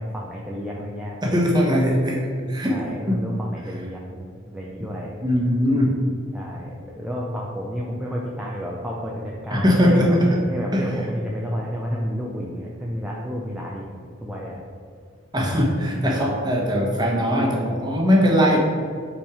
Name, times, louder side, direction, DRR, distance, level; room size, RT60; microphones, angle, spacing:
voice 1, 0.0-1.3 2.7-5.2 6.3-10.2 10.5-14.6, equal, 5° right, -4 dB, 0.5 m, -31 dB
voice 2, 1.2-2.7 3.1-3.2 5.2-5.9 9.5-10.3 10.7-10.8 15.3-18.6, equal, 20° right, -2 dB, 1.1 m, -20 dB
5.8 x 4.4 x 4.9 m, 2.2 s
head